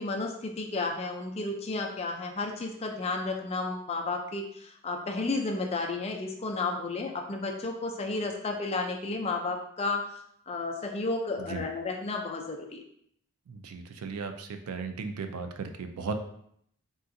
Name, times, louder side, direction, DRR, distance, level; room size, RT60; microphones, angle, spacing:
voice 1, 0.0-10.1 10.5-12.8, left 3 dB, 30° left, 2 dB, 0.3 m, -32 dB
voice 2, 13.5-16.1, right 4 dB, 80° right, 6 dB, 0.4 m, -36 dB
3.7 x 2.4 x 2.6 m, 0.69 s
head